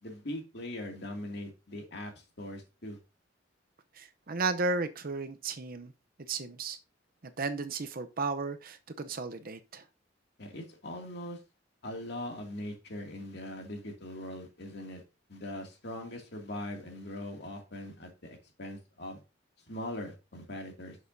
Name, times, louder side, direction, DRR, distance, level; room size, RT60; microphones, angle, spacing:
voice 1, 0.0-2.1 2.4-3.0 10.4-11.4 11.8-15.0 15.3-19.2 19.7-21.0, left 1 dB, 60° left, 2.4 m, -41 dB
voice 2, 4.0-5.9 6.3-6.8 7.4-9.8, right 3 dB, 50° right, 0.7 m, -34 dB
11.0 x 6.4 x 2.7 m
head